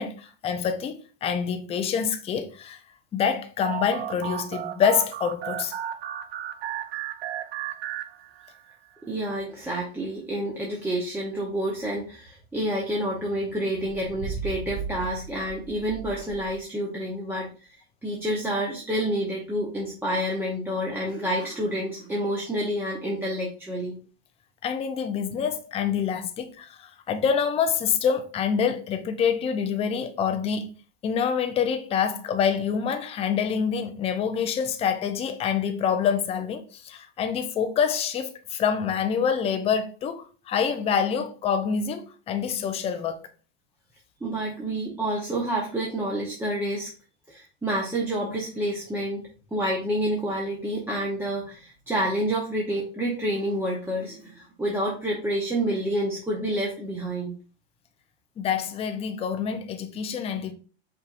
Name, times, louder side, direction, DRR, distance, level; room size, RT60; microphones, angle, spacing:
voice 1, 0.0-2.8 3.1-5.7 24.6-30.7 31.0-43.3 58.4-60.5, left 7 dB, 20° left, 0.5 m, -26 dB
sound 1, 3.6-8.7, right 10 dB, 80° right, 0.6 m, -34 dB
voice 2, 9.0-17.5 18.0-23.9 44.2-46.9 47.3-49.2 49.5-57.3, right 1 dB, 5° right, 0.8 m, -28 dB
sound 2, 13.8-16.6, right 5 dB, 60° right, 1.2 m, -37 dB
5.5 x 3.5 x 2.5 m
supercardioid pair, 130°, 32 cm